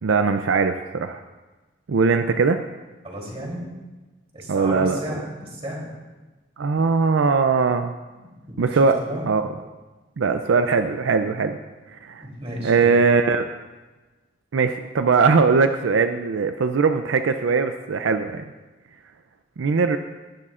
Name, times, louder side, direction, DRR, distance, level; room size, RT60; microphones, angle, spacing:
voice 1, 0.0-1.2 1.9-2.6 4.5-5.0 6.6-7.9 8.6-9.0 9.3-9.5 10.2-11.6 11.9-12.3 12.6-13.4 14.5-18.4 19.6-20.0, right 4 dB, 80° right, 8 dB, 0.5 m, -20 dB
voice 2, 3.0-3.6 4.3-5.9 8.1-9.2 12.2-12.9, equal, 30° right, -3 dB, 3.3 m, -34 dB
18.5 x 11.0 x 2.5 m, 1.2 s
head